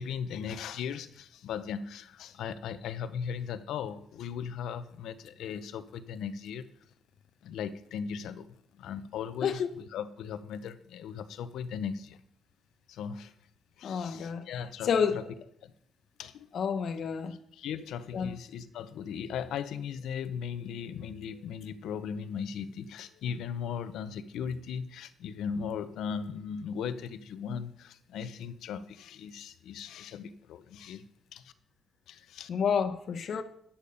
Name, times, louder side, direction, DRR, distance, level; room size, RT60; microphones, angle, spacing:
voice 1, 0.0-6.7 7.4-8.5 8.7-12.2 12.9-13.3 13.8-15.2 15.6-15.7 16.2-16.5 17.5-31.0 31.3-31.5 32.1-32.5, left 7 dB, 80° left, 0.7 m, -38 dB
voice 2, 13.8-14.4 14.8-15.2 16.5-17.3 18.1-18.3 32.5-33.4, left 6 dB, 60° left, 1.0 m, -29 dB
10.0 x 8.5 x 5.3 m
cardioid pair, 90°, 0 cm